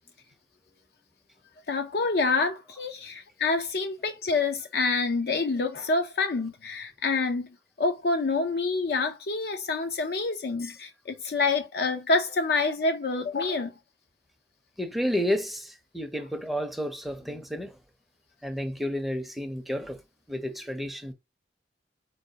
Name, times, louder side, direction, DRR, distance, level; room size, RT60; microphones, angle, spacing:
voice 1, 1.7-7.5 7.8-13.7, left 3 dB, 60° left, 0.5 m, -27 dB
voice 2, 14.8-17.8 18.4-20.0 20.3-21.1, equal, ahead, 0.6 m, -31 dB
4.4 x 3.2 x 2.7 m
head